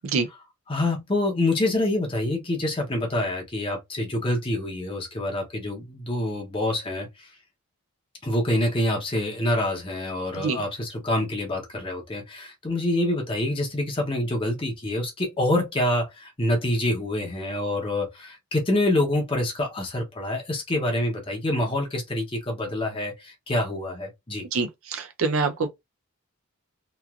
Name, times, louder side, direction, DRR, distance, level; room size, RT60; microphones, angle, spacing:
voice 1, 0.7-7.3 8.2-24.4, left 1 dB, 25° left, 0.7 m, -26 dB
voice 2, 24.5-25.7, right 4 dB, 65° right, 0.5 m, -25 dB
3.0 x 2.4 x 2.3 m
head